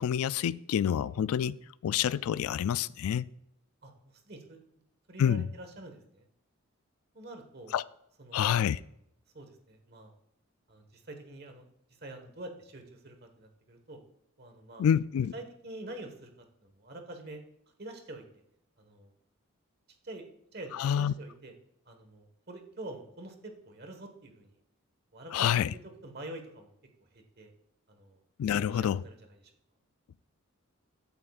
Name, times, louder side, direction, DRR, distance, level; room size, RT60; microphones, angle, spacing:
voice 1, 0.0-1.6 1.8-3.3 5.2-5.5 7.7-7.8 8.3-8.8 14.8-15.3 20.7-21.1 25.3-25.7 28.4-29.0, left 9 dB, 85° left, 0.3 m, -27 dB
voice 2, 4.3-4.6 5.1-6.2 7.1-7.7 8.2-8.6 9.3-10.1 10.7-11.6 12.0-14.0 14.4-14.9 15.3-16.3 16.6-17.4 17.8-18.4 18.8-19.1 20.0-20.2 20.5-21.5 21.9-24.5 25.1-26.7 27.1-27.5 27.9-28.2 28.5-29.4, right 2 dB, 45° right, 1.4 m, -46 dB
14.5 x 8.6 x 2.4 m
head